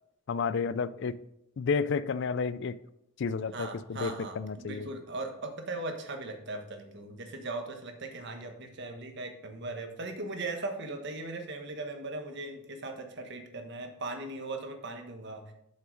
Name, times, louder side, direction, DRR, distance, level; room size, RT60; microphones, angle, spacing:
voice 1, 0.3-1.2 1.6-2.8 3.2-4.9, left 5 dB, 60° left, 0.4 m, -31 dB
voice 2, 3.5-15.5, right 2 dB, 55° right, 1.2 m, -39 dB
7.5 x 5.7 x 5.1 m
head